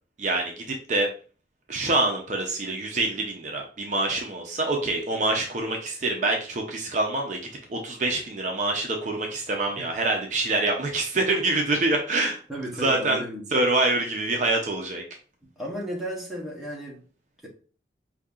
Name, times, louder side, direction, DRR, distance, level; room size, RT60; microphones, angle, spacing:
voice 1, 0.2-1.1 1.7-7.4 7.7-12.4 12.8-13.2 13.5-15.0, right 2 dB, 45° right, 1 dB, 0.6 m, -25 dB
voice 2, 12.5-13.4 15.6-17.0, equal, ahead, -4 dB, 1.0 m, -34 dB
5.1 x 2.7 x 2.4 m, 0.39 s
head